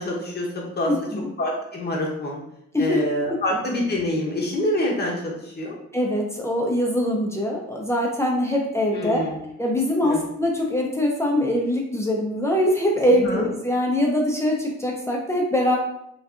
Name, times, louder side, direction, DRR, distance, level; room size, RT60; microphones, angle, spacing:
voice 1, 0.0-0.9 1.4-2.4 2.8-5.8 8.9-9.4 10.0-10.2 13.1-13.5, left 1 dB, 35° left, -3 dB, 0.8 m, -26 dB
voice 2, 0.9-1.3 2.7-3.0 5.9-9.2 9.6-15.8, left 1 dB, 10° left, -2 dB, 0.4 m, -23 dB
2.6 x 2.4 x 2.3 m, 0.79 s
cardioid pair, 90°, 30 cm